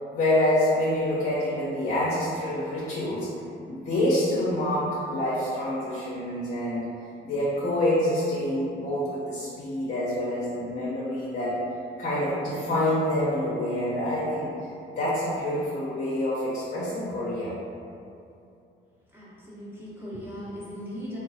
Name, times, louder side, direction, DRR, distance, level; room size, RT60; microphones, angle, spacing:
voice 1, 0.1-3.3 3.7-6.9 7.2-11.5 12.0-14.5 14.9-17.5, left 1 dB, 45° left, -8 dB, 0.7 m, -27 dB
voice 2, 19.1-21.2, equal, 10° right, -9 dB, 1.0 m, -38 dB
3.6 x 2.0 x 2.7 m, 2.6 s
cardioid pair, 90°, 20 cm